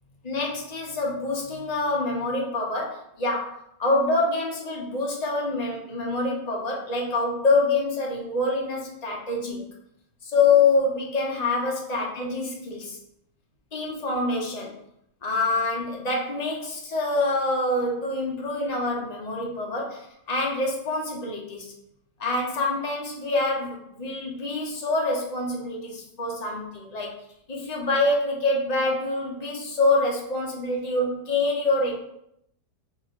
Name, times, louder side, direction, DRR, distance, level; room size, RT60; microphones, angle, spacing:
voice 1, 0.2-9.6 10.2-13.0 13.7-14.8 15.2-21.7 22.2-27.2 27.5-31.9, left 3 dB, 60° left, -2 dB, 0.4 m, -26 dB
3.1 x 2.8 x 4.2 m, 0.76 s
omnidirectional pair, 1.8 m